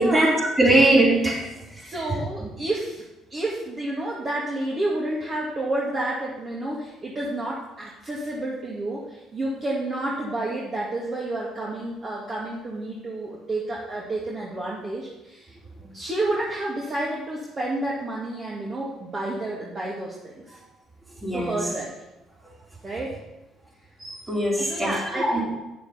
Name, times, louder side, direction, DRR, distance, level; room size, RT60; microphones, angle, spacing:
voice 1, 0.0-1.4 21.2-21.6 24.0-25.4, right 1 dB, 20° right, -3 dB, 4.0 m, -21 dB
voice 2, 1.8-3.0 3.3-15.6 15.9-20.6 21.3-22.0 22.8-23.2 24.6-25.4, right 2 dB, 35° right, -4 dB, 2.2 m, -30 dB
9.1 x 7.0 x 5.7 m, 0.97 s
supercardioid pair, 65°, 0 cm